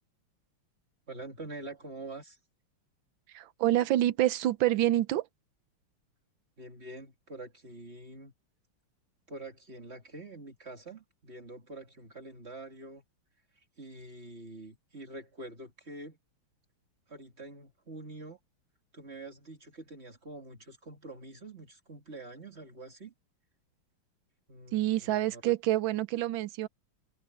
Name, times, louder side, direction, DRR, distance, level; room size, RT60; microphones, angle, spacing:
voice 1, 1.1-2.4 6.6-8.3 9.3-13.0 13.8-16.2 17.1-18.4 18.9-23.1 24.5-25.4, right 2 dB, 30° right, 2.6 m, -46 dB
voice 2, 3.3-5.3 24.7-26.7, right 14 dB, 70° right, 1.4 m, -27 dB
omnidirectional pair, 2.4 m